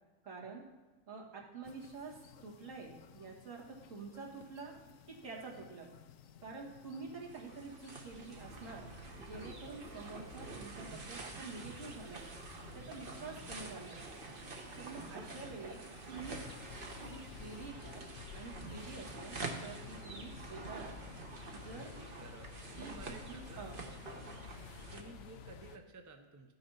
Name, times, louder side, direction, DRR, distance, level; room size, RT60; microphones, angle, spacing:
voice 1, 0.2-0.7 1.1-4.7 5.1-5.9 6.4-8.9 9.2-12.2 12.7-14.0 14.8-16.4 17.1-18.1 18.3-20.9 21.5-21.9 22.8-24.0, right 4 dB, 70° right, -4 dB, 2.5 m, -48 dB
sound 1, 1.6-17.7, left 9 dB, 80° left, 1.0 m, -59 dB
sound 2, 7.0-25.0, right 3 dB, 45° right, 1.2 m, -47 dB
sound 3, 16.1-25.8, left 7 dB, 60° left, 0.8 m, -51 dB
voice 2, 21.6-23.7 24.9-26.5, right 3 dB, 20° right, 5 dB, 0.6 m, -54 dB
13.0 x 6.8 x 5.7 m, 1.2 s
omnidirectional pair, 1.4 m